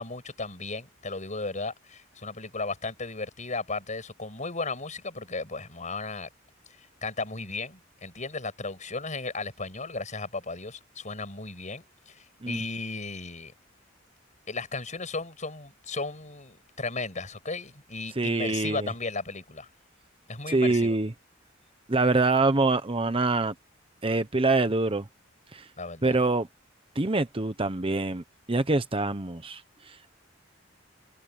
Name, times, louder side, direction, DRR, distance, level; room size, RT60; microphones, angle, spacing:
voice 1, 0.0-6.3 7.0-13.5 14.5-19.7 20.3-20.9 25.8-26.2, left 3 dB, 40° left, 6.8 m, -35 dB
voice 2, 18.2-18.9 20.5-21.1 21.9-23.5 24.0-25.1 25.5-25.6 26.0-26.5 27.0-28.2 28.5-29.6, right 3 dB, 30° right, 1.0 m, -25 dB
head